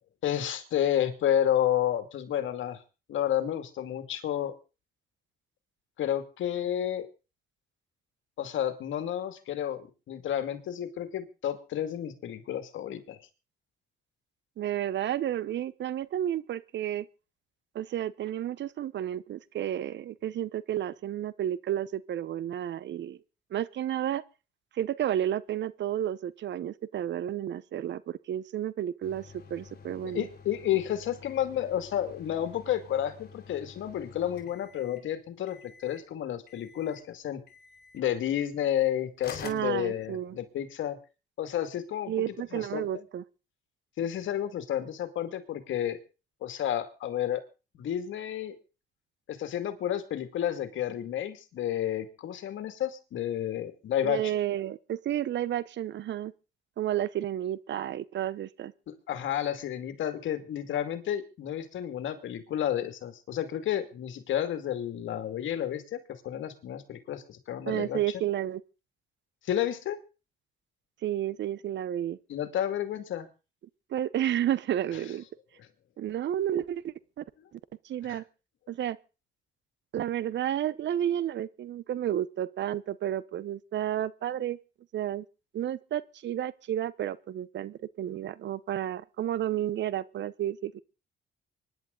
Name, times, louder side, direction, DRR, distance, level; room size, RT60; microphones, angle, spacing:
voice 1, 0.2-2.8 3.1-4.5 6.0-7.1 8.4-13.2 30.0-37.4 37.9-41.0 41.4-42.1 42.5-42.9 44.0-46.0 46.4-47.4 47.7-48.6 49.3-54.3 58.9-68.0 69.4-70.0 72.3-73.3 75.6-75.7 78.1-78.2, left 10 dB, 75° left, 2.4 m, -31 dB
voice 2, 14.6-17.1 17.7-23.2 23.5-24.2 24.7-30.3 39.4-40.4 42.1-43.2 54.0-56.3 56.8-58.7 67.7-68.6 71.0-72.2 73.9-75.2 76.0-77.2 77.5-77.6 77.8-78.2 78.7-79.0 79.9-84.6 84.9-85.2 85.5-90.8, right 11 dB, 65° right, 0.9 m, -31 dB
sound 1, 29.0-35.1 35.5-36.1 36.5-37.1 37.5-38.0 38.8-38.9 39.2-40.5, left 6 dB, 50° left, 4.3 m, -49 dB
25.0 x 11.0 x 3.9 m
cardioid pair, 90°, 20 cm